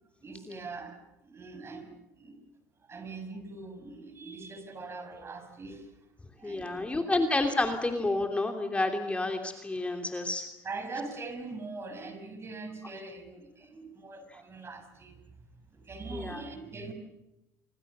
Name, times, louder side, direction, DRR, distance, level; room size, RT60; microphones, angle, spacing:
voice 1, 0.2-2.4 2.9-5.9 6.4-7.0 10.6-15.2 15.7-16.9, right 3 dB, 30° right, 8 dB, 6.1 m, -42 dB
voice 2, 6.4-10.5 16.1-16.4, left 2 dB, 15° left, 4 dB, 2.8 m, -30 dB
27.0 x 25.0 x 6.7 m, 0.94 s
supercardioid pair, 90°, 9 cm